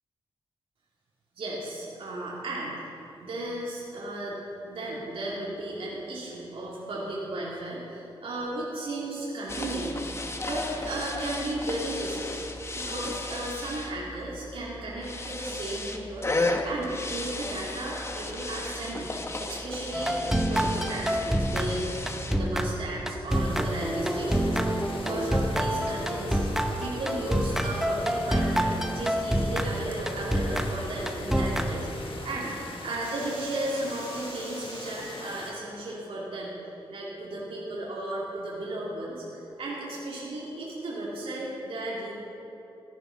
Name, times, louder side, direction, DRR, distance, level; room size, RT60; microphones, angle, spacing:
voice 1, 1.3-2.8 3.2-4.4 4.7-10.1 10.4-12.3 12.7-26.5 26.8-32.6 32.8-36.5 36.9-42.1, right 1 dB, 75° right, -6 dB, 2.7 m, -35 dB
sound 1, 9.5-22.9, left 2 dB, 30° left, 1.1 m, -34 dB
sound 2, 19.9-32.3, equal, 5° right, 0.8 m, -28 dB
sound 3, 23.3-35.5, left 3 dB, 65° left, 1.4 m, -42 dB
15.0 x 9.5 x 5.8 m, 2.9 s
wide cardioid pair, 105°, 10 cm